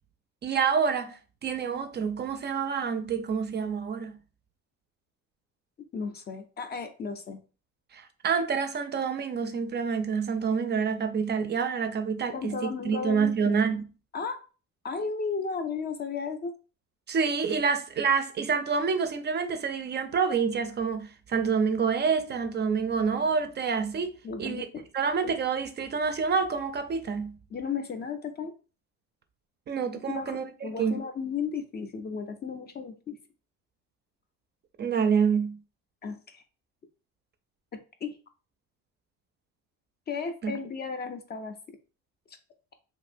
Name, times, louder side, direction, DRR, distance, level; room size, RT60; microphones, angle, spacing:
voice 1, 0.4-4.2 7.9-13.8 17.1-24.1 24.4-24.6 24.9-27.3 29.7-30.4 30.8-30.9 34.8-35.6 40.4-40.6, right 6 dB, 35° right, 0.4 m, -27 dB
voice 2, 5.9-7.4 12.3-13.6 14.1-14.4 14.8-16.5 24.2-24.9 25.2-25.3 27.5-28.5 30.1-33.2 36.0-36.4 37.7-38.2 40.1-41.8, left 5 dB, 30° left, 0.4 m, -34 dB
2.9 x 2.7 x 2.5 m
cardioid pair, 110°, 31 cm